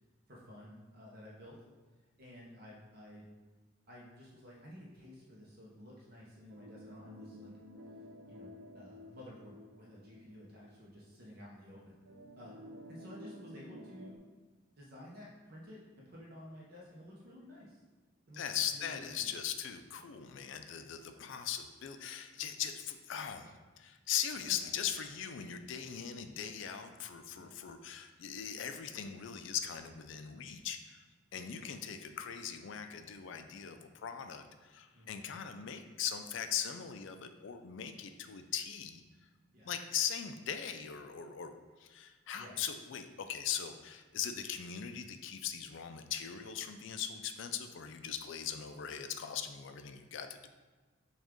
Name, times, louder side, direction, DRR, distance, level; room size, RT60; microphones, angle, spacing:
voice 1, 0.3-1.6 2.2-3.3 3.9-7.5 8.3-12.0 12.4-12.6 12.9-14.2 14.8-15.8 16.1-17.8 18.3-18.4 18.7-19.3 27.4-27.6 31.3-31.4 34.9-35.3 39.5-39.7 42.4-42.6, left 1 dB, 45° right, -5 dB, 0.7 m, -52 dB
sound 1, 6.5-10.8 11.2-11.3 12.0-14.2, equal, 80° right, 0.4 m, -52 dB
voice 2, 18.3-31.0 31.3-39.0 39.6-50.5, left 8 dB, 65° left, 8 dB, 0.3 m, -40 dB
6.2 x 2.4 x 3.6 m, 1.3 s
head